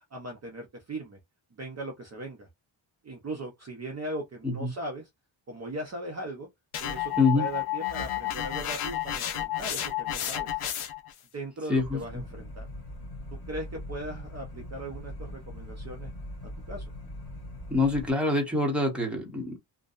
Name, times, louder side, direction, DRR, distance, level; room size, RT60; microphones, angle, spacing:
voice 1, 0.1-1.2 1.5-2.5 3.0-5.1 5.5-6.5 6.8-10.6 11.3-12.7 13.3-16.1 16.7-16.9, right 1 dB, 35° right, 0.6 m, -38 dB
sound 1, 6.7-11.1, left 12 dB, 80° left, 0.7 m, -31 dB
sound 2, 11.8-18.1, left 1 dB, 35° left, 1.6 m, -41 dB
voice 2, 17.7-19.6, left 3 dB, ahead, 0.8 m, -25 dB
2.6 x 2.2 x 2.4 m
wide cardioid pair, 145°, 50 cm